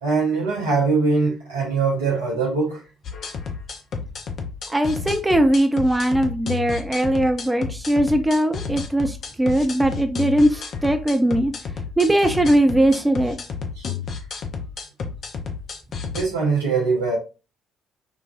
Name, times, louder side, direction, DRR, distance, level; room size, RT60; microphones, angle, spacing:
voice 1, 0.0-2.8 13.8-13.9 16.1-17.2, right 4 dB, 75° right, 0.7 m, -22 dB
sound 1, 3.0-16.2, left 5 dB, 50° left, 0.6 m, -31 dB
voice 2, 4.7-11.5 12.0-13.4, right 1 dB, 10° right, 0.7 m, -20 dB
4.8 x 2.3 x 2.4 m
figure-of-eight pair, 45°, 0 cm